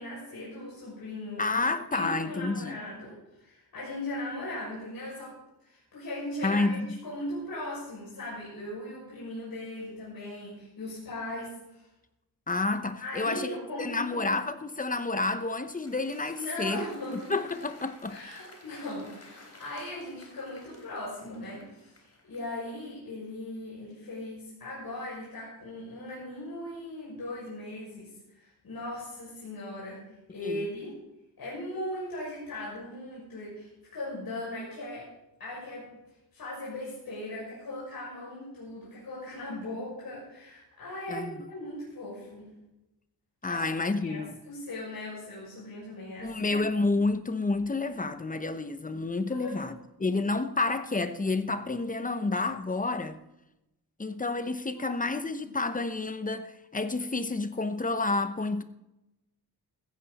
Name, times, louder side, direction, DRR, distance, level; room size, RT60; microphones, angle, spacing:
voice 1, 0.0-1.6 1.9-5.3 5.6-11.9 13.0-14.3 16.3-17.3 18.1-30.0 30.3-30.9 31.4-35.0 35.4-35.9 36.3-42.5 43.5-43.6 44.0-46.6 49.3-49.6 54.7-55.2 55.5-55.6, left 1 dB, 60° left, 6.5 m, -39 dB
voice 2, 1.4-2.8 6.4-7.0 12.5-13.5 13.8-16.9 17.1-18.2 30.4-30.7 41.1-41.4 43.4-44.4 46.2-53.2 54.0-58.6, left 3 dB, 20° left, 0.8 m, -30 dB
Applause, 15.2-22.6, left 2 dB, 35° left, 3.5 m, -54 dB
15.5 x 14.5 x 4.1 m
wide cardioid pair, 135°, 39 cm